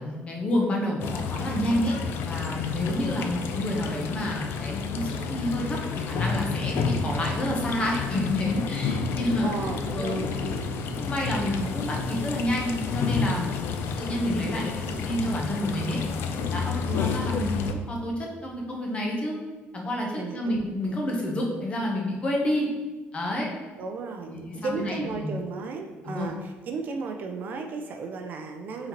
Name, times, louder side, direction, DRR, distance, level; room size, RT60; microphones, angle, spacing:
voice 1, 0.0-1.9 2.2-9.5 10.0-10.3 11.0-16.0 16.5-19.4 19.7-22.7 23.1-23.5 24.3-25.3 26.1-26.3, left 1 dB, 25° left, -1 dB, 0.7 m, -29 dB
sound 1, 1.0-17.7, left 5 dB, 65° left, 0.3 m, -30 dB
voice 2, 9.4-10.6 16.8-17.3 20.1-20.6 20.8-21.0 23.8-28.9, right 4 dB, 45° right, 3 dB, 0.4 m, -34 dB
4.3 x 3.8 x 2.9 m, 1.2 s
cardioid pair, 155°, 4 cm